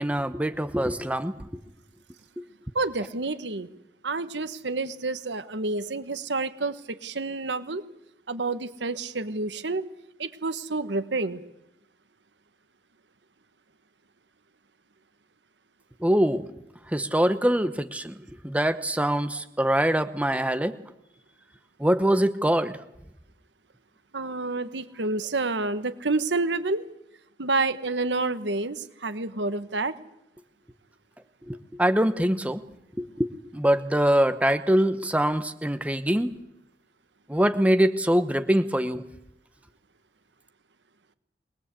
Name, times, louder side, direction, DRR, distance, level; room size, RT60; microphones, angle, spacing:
voice 1, 0.0-1.3 2.4-2.5 16.0-16.5 16.9-18.2 18.4-20.8 21.8-22.7 31.5-32.6 33.0-36.3 37.3-39.0, right 1 dB, 10° right, 10 dB, 1.0 m, -23 dB
voice 2, 2.7-3.7 4.0-7.8 8.3-9.9 10.2-11.4 24.1-26.9 27.4-29.9, right 3 dB, 85° right, 12 dB, 1.3 m, -29 dB
23.0 x 20.0 x 8.3 m, 0.85 s
head